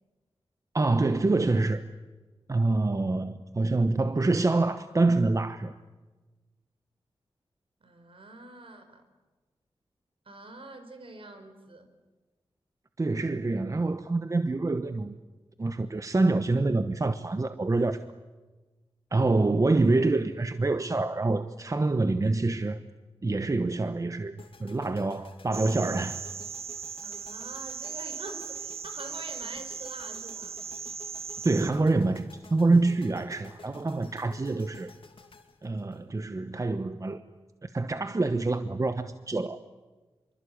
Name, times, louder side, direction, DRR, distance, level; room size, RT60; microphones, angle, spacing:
voice 1, 0.7-1.8 2.5-5.7 13.0-15.1 15.6-18.0 19.1-22.8 23.2-26.2 31.4-34.9 35.6-37.2 37.6-39.6, right 3 dB, 35° right, 1.1 m, -26 dB
voice 2, 7.8-9.0 10.3-11.9 27.0-30.6, right 2 dB, 65° right, 4.5 m, -45 dB
sound 1, 24.4-36.6, left 4 dB, 65° left, 2.9 m, -53 dB
sound 2, 25.5-31.7, right 6 dB, 90° right, 1.2 m, -38 dB
26.0 x 23.5 x 8.7 m
wide cardioid pair, 75°, 10 cm